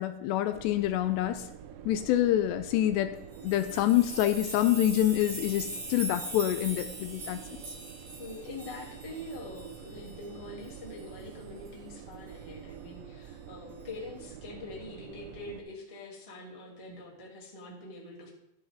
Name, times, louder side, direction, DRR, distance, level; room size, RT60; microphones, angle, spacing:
voice 1, 0.0-1.5 1.9-3.2 3.4-7.6, left 13 dB, 80° left, 9 dB, 2.7 m, -27 dB
sound 1, 0.5-15.6, right 9 dB, 85° right, 2.8 m, -47 dB
sound 2, 3.3-10.1 10.6-10.7 11.0-11.1 11.7-11.8, right 2 dB, 40° right, 2.2 m, -41 dB
voice 2, 8.2-18.3, left 2 dB, 15° left, -4 dB, 1.4 m, -44 dB
13.0 x 10.5 x 3.6 m, 0.82 s
omnidirectional pair, 5.1 m